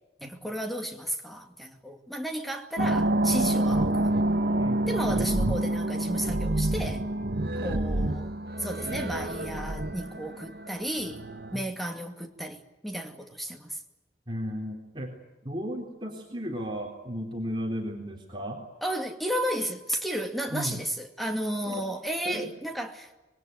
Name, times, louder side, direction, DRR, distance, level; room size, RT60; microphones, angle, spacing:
voice 1, 0.2-4.1 4.9-7.0 7.6-8.3 8.6-13.8 18.8-23.1, equal, ahead, 2.4 m, -33 dB
sound 1, 2.8-11.6, right 1 dB, 60° right, 1.2 m, -27 dB
voice 2, 4.6-5.0 11.5-11.6 14.3-15.1 15.4-18.6 20.5-20.8 21.7-21.8 22.3-22.5, equal, 25° right, 3.6 m, -34 dB
26.0 x 22.0 x 9.3 m
head